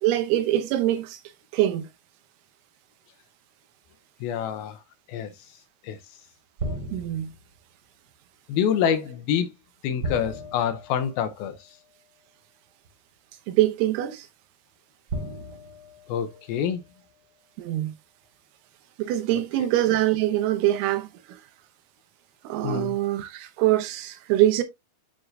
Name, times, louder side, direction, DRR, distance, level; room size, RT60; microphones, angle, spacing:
voice 1, 0.0-1.2 1.5-1.9 6.9-7.3 13.5-14.3 17.6-17.9 19.0-21.4 22.4-24.6, right 14 dB, 90° right, 2.9 m, -24 dB
voice 2, 4.2-4.8 5.1-5.3 5.8-6.0 8.5-9.5 9.8-11.6 16.1-16.8 22.6-23.0, left 8 dB, 80° left, 2.5 m, -26 dB
sound 1, 6.6-7.6 10.0-11.7 12.8-12.9 15.1-16.8, right 1 dB, 35° right, 2.0 m, -36 dB
8.7 x 4.5 x 2.6 m
omnidirectional pair, 4.5 m